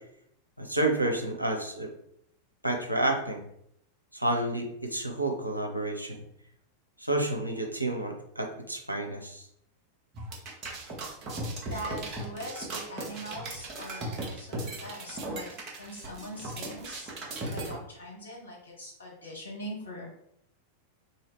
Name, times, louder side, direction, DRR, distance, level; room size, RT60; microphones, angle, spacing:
voice 1, 0.6-1.9 2.6-3.4 4.1-6.2 7.0-9.4, right 2 dB, 90° right, 3 dB, 0.6 m, -30 dB
sound 1, 10.1-17.7, right 2 dB, 35° right, 1.0 m, -37 dB
voice 2, 11.5-15.5 15.8-17.1 17.4-20.2, equal, 75° left, -3 dB, 1.3 m, -42 dB
2.9 x 2.8 x 3.0 m, 0.73 s
figure-of-eight pair, 90°, 0 cm